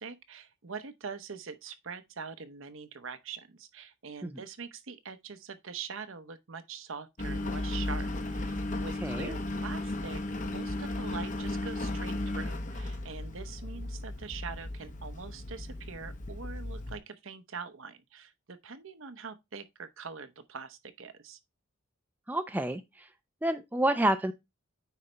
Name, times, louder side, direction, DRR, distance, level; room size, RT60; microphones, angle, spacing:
voice 1, 0.0-21.4, right 5 dB, 70° right, 0.8 m, -43 dB
Engine, 7.2-17.0, left 1 dB, 35° left, 0.9 m, -35 dB
voice 2, 9.0-9.3 22.3-23.1 23.4-24.3, right 1 dB, 10° right, 0.4 m, -29 dB
9.3 x 4.2 x 3.2 m
head